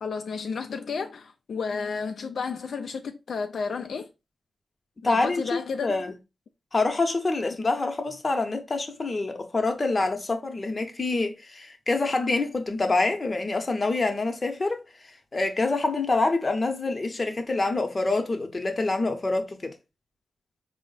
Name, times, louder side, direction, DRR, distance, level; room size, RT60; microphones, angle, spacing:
voice 1, 0.0-4.1 5.0-6.1, left 5 dB, 80° left, 0.3 m, -32 dB
voice 2, 5.0-6.1 6.7-14.8 15.3-19.7, left 3 dB, 35° left, 0.7 m, -26 dB
4.3 x 2.0 x 3.9 m
wide cardioid pair, 110°, 0 cm